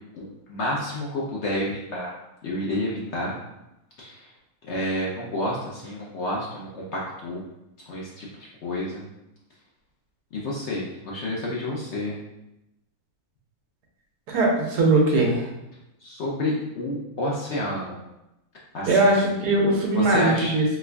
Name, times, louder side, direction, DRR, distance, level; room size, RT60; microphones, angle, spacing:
voice 1, 0.1-2.1 2.4-3.4 4.0-4.3 4.7-7.4 7.9-9.0 10.3-12.2 16.0-18.0 18.7-19.2 19.9-20.5, left 1 dB, 60° left, -4 dB, 0.7 m, -29 dB
voice 2, 14.3-15.5 18.9-20.8, right 2 dB, 85° right, -1 dB, 1.3 m, -20 dB
4.5 x 2.4 x 2.2 m, 0.91 s
omnidirectional pair, 1.7 m